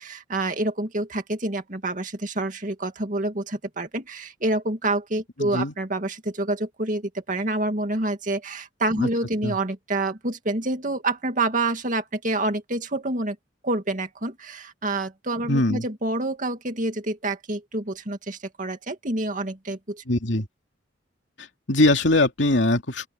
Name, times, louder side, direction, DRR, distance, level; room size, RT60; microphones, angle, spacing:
voice 1, 0.0-13.4 13.6-20.0, right 2 dB, 45° right, 2.2 m, -27 dB
voice 2, 5.4-5.7 9.0-9.1 9.4-9.6 15.5-15.8 20.1-20.5 21.4-23.1, left 2 dB, 75° left, 2.8 m, -22 dB
open air
head